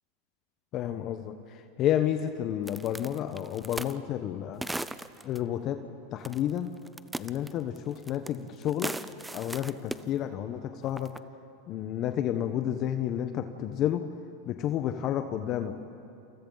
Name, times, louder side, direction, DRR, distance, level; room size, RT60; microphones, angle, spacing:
voice 1, 0.7-4.6 5.2-5.8 6.1-6.7 7.2-8.9 9.3-11.1 11.7-14.0 14.5-15.7, left 11 dB, 45° left, 8 dB, 1.1 m, -30 dB
sound 1, 2.7-4.0 4.6-5.4 6.2-6.6 6.9-8.4 8.6-10.0 10.9-11.2, right 2 dB, 5° right, 0.6 m, -37 dB
28.5 x 28.0 x 4.0 m, 2.8 s
hypercardioid pair, 110°, 0 cm